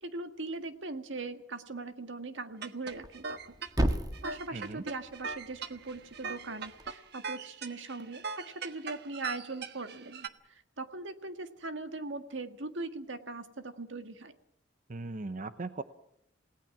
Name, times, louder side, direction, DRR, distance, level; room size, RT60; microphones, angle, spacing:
voice 1, 0.0-3.5 4.2-14.3, right 3 dB, 75° right, 8 dB, 1.8 m, -40 dB
sound 1, 2.6-10.3, right 5 dB, 60° right, 1.3 m, -40 dB
Thump thud, 2.9-7.0, right 1 dB, 20° right, 1.5 m, -36 dB
voice 2, 4.5-4.8 14.9-15.8, right 3 dB, 45° right, 11 dB, 0.8 m, -38 dB
28.5 x 18.0 x 6.1 m, 0.78 s
head